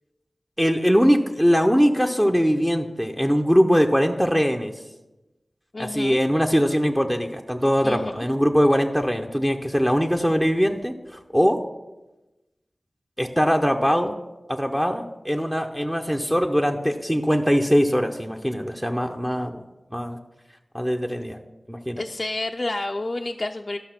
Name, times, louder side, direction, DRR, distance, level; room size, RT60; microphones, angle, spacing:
voice 1, 0.6-4.7 5.8-11.6 13.2-14.1 14.5-19.6 19.9-20.2 20.7-21.4 21.7-22.0, equal, 10° right, 3 dB, 0.7 m, -21 dB
voice 2, 5.7-6.2 7.8-8.3 22.0-23.8, left 2 dB, 45° left, 3 dB, 0.4 m, -29 dB
12.0 x 5.9 x 5.9 m, 1.1 s
wide cardioid pair, 60°, 0 cm